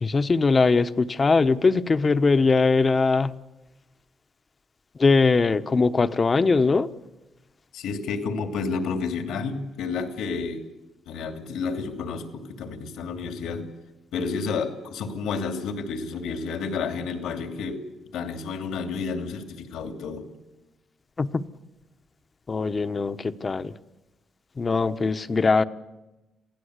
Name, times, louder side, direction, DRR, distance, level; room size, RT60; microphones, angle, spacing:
voice 1, 0.0-3.3 5.0-6.9 21.2-21.5 22.5-23.7 24.6-25.6, left 4 dB, 30° left, 12 dB, 1.0 m, -21 dB
voice 2, 7.7-10.6 11.1-13.7 14.1-17.8 18.1-20.3, left 5 dB, 85° left, 6 dB, 2.7 m, -30 dB
27.5 x 16.5 x 8.2 m, 1.1 s
cardioid pair, 90°, 0 cm